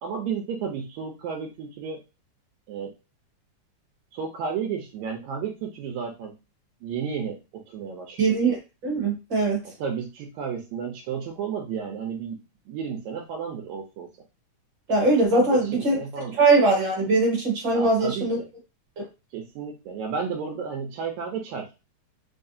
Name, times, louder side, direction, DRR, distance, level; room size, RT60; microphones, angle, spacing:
voice 1, 0.0-2.0 2.7-2.9 4.1-6.3 6.8-8.3 9.6-14.1 15.3-16.4 17.7-18.5 19.3-21.7, right 6 dB, 85° right, 1 dB, 1.9 m, -32 dB
voice 2, 8.2-8.6 8.8-9.6 14.9-16.0 16.4-18.4, right 3 dB, 45° right, -2 dB, 1.8 m, -21 dB
4.7 x 2.3 x 2.7 m, 0.29 s
omnidirectional pair, 3.4 m